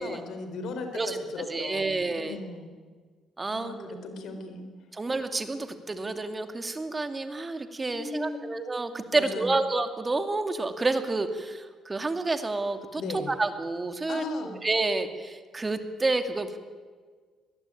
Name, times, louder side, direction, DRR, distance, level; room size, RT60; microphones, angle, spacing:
voice 1, 0.0-2.7 3.5-4.7 7.9-8.5 9.1-9.5 12.9-13.3 14.1-14.5, left 3 dB, 75° left, 8 dB, 4.3 m, -37 dB
voice 2, 1.5-2.4 3.4-4.0 4.9-16.6, right 3 dB, 25° right, 8 dB, 2.4 m, -29 dB
23.0 x 20.0 x 9.2 m, 1.5 s
cardioid pair, 90°, 0 cm